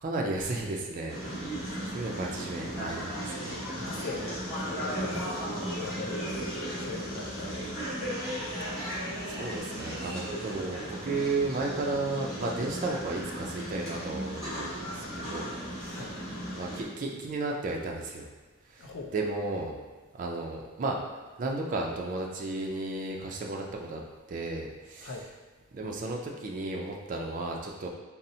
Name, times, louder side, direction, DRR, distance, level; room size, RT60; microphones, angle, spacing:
voice 1, 0.0-1.5 1.9-3.6 5.0-5.2 7.4-7.8 8.7-9.0 9.3-16.1 16.5-18.3 18.7-19.8 20.1-21.0 21.4-24.0 24.3-25.1 25.7-27.9, right 2 dB, 40° right, 0 dB, 0.3 m, -34 dB
sound 1, 1.1-16.8, equal, ahead, 1.3 m, -36 dB
voice 2, 3.8-7.7 15.9-16.2 18.8-19.1 25.0-25.3, left 3 dB, 65° left, -1 dB, 0.5 m, -41 dB
Subway metro underground, 4.3-15.8, equal, 20° right, 1.1 m, -49 dB
3.9 x 2.0 x 2.7 m, 1.3 s
head